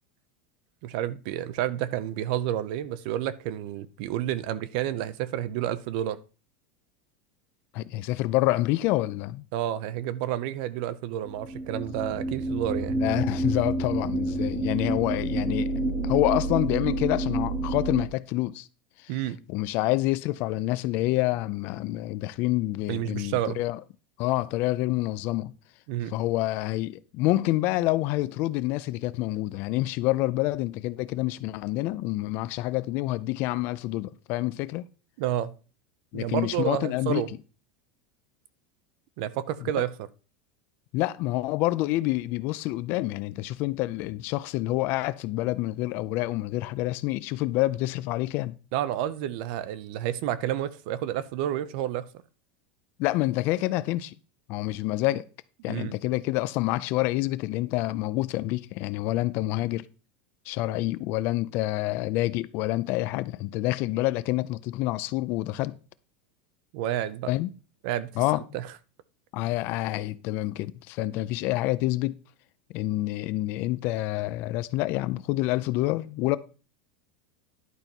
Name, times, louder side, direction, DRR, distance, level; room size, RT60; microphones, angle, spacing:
voice 1, 0.8-6.2 9.5-13.0 19.1-19.4 22.9-23.6 25.9-26.1 35.2-35.5 36.1-37.3 39.2-39.9 48.7-52.1 55.7-55.9 66.7-67.3 67.8-68.1 68.5-68.7, right 12 dB, 50° right, 0.6 m, -30 dB
voice 2, 7.7-9.4 12.9-15.7 16.0-18.7 19.0-19.1 19.5-23.8 24.2-25.5 26.1-34.8 36.1-37.2 39.7-39.8 40.9-48.6 53.0-54.1 54.5-55.2 55.6-59.9 60.5-65.8 67.3-67.5 68.2-68.4 69.3-72.2 72.7-76.4, left 17 dB, 35° left, 0.4 m, -27 dB
sound 1, 11.2-18.0, right 2 dB, 20° right, 1.9 m, -29 dB
11.0 x 4.5 x 5.3 m
supercardioid pair, 180°, 6 cm